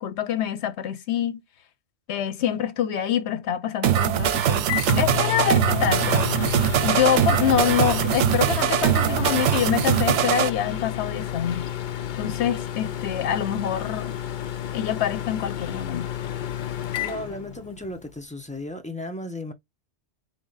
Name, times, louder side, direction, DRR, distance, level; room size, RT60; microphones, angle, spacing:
voice 1, 0.0-1.4 2.1-6.3 6.8-11.7 12.2-14.1 14.7-16.1, left 9 dB, 75° left, 1.0 m, -26 dB
sound 1, 3.8-10.5, right 11 dB, 90° right, 0.9 m, -22 dB
Microwave oven, 4.0-18.0, left 11 dB, 55° left, 0.6 m, -31 dB
voice 2, 17.0-19.5, left 1 dB, 5° left, 0.8 m, -35 dB
3.9 x 3.2 x 3.9 m
omnidirectional pair, 1.2 m